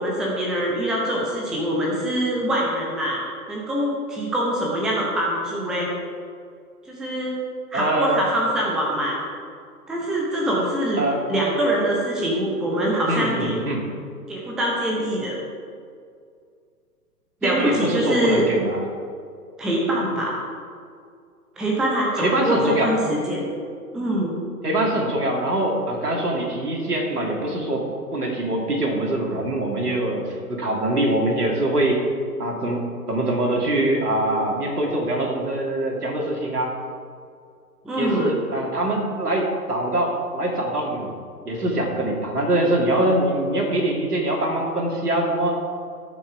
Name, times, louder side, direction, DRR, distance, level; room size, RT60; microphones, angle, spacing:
voice 1, 0.0-3.2 3.5-5.9 6.9-7.3 7.7-9.2 9.9-11.0 11.3-13.6 14.3-15.4 17.4-18.4 19.6-20.4 21.6-23.5 23.9-24.4 37.8-38.3, equal, ahead, -3 dB, 0.6 m, -24 dB
voice 2, 7.7-8.2 11.0-11.2 13.1-13.8 17.4-18.8 22.2-22.9 24.6-27.9 28.1-32.0 32.4-32.8 33.1-36.7 38.0-41.1 41.4-45.6, right 1 dB, 75° right, 0 dB, 2.9 m, -23 dB
17.5 x 6.1 x 4.9 m, 2.2 s
figure-of-eight pair, 120°, 47 cm